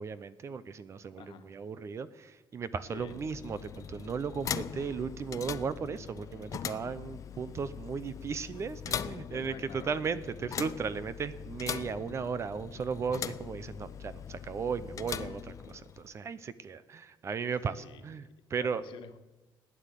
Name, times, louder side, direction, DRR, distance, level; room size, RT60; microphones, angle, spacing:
voice 1, 0.0-18.8, right 6 dB, 35° right, 15 dB, 0.6 m, -36 dB
voice 2, 1.2-1.5 2.8-3.2 9.3-9.9 17.7-18.3 18.5-19.2, left 8 dB, 75° left, 7 dB, 1.4 m, -48 dB
sound 1, 2.8-16.1, left 8 dB, 40° left, 0.5 m, -41 dB
15.5 x 9.9 x 8.3 m, 1.1 s
cardioid pair, 165°, 8 cm